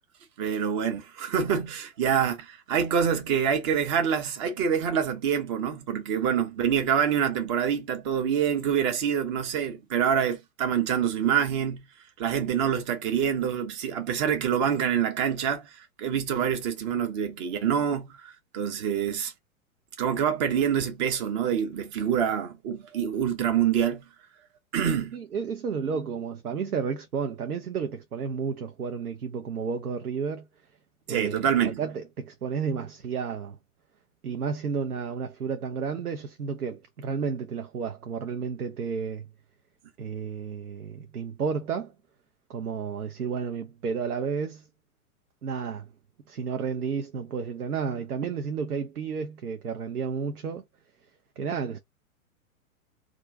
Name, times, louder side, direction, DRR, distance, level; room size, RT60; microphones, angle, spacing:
voice 1, 0.4-11.8 12.2-19.3 20.0-24.0 24.7-25.2 31.1-31.8, right 8 dB, 20° right, 0.4 m, -26 dB
voice 2, 25.1-30.5 31.1-31.5 31.8-33.6 34.2-39.3 40.0-41.9 42.5-44.7 45.4-45.9 46.3-50.6 51.4-51.8, right 6 dB, 85° right, 0.6 m, -32 dB
2.4 x 2.2 x 3.4 m
figure-of-eight pair, 100°, 43 cm